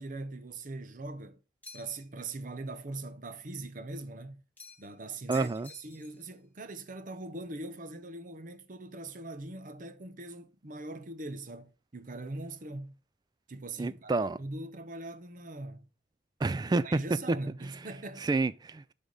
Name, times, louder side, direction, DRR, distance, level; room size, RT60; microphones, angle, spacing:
voice 1, 0.0-1.4 1.7-4.4 4.8-12.9 13.5-15.9 16.8-18.3, right 2 dB, 45° right, 0.9 m, -41 dB
sound 1, 1.6-2.1 4.6-5.0 5.3-6.3, left 3 dB, 10° left, 1.7 m, -50 dB
voice 2, 5.3-5.7 13.8-14.4 16.4-16.9 17.3-17.4 18.2-18.9, right 3 dB, 20° right, 0.3 m, -29 dB
10.5 x 3.6 x 5.2 m
head